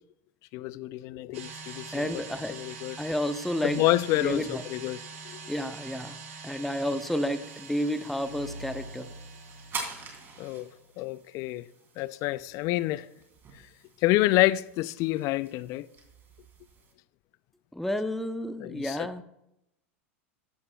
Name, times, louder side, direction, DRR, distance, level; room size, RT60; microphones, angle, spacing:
voice 1, 0.5-2.2 2.5-3.0 3.6-5.0 5.2-5.4 10.4-10.7 11.0-11.7 12.0-13.1 14.0-15.9 18.6-19.1, left 17 dB, 50° left, 0.4 m, -28 dB
sound 1, 1.3-10.7, right 5 dB, 75° right, 1.9 m, -45 dB
voice 2, 1.9-2.6 3.0-3.8 4.2-4.6 5.5-9.1 17.7-19.2, equal, 5° left, 0.8 m, -31 dB
sound 2, 7.4-16.9, right 4 dB, 30° right, 3.0 m, -46 dB
sound 3, 8.1-11.0, equal, 75° left, 1.3 m, -46 dB
13.5 x 11.0 x 2.4 m
hypercardioid pair, 95°, 7 cm